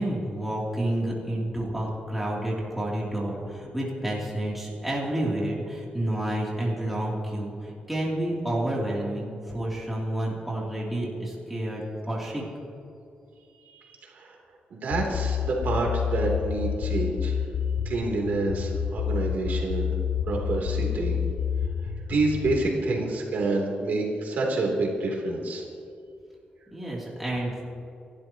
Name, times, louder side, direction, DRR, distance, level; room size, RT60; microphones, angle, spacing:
voice 1, 0.0-12.4 26.7-27.7, right 1 dB, 5° right, -5 dB, 2.9 m, -29 dB
voice 2, 13.5-14.4 14.7-17.4 17.8-19.9 20.3-21.2 22.1-25.6, right 2 dB, 65° right, -1 dB, 3.1 m, -28 dB
sound 1, 14.9-22.6, left 8 dB, 75° left, 0.8 m, -28 dB
29.0 x 12.5 x 3.0 m, 2.5 s
wide cardioid pair, 175°, 3 cm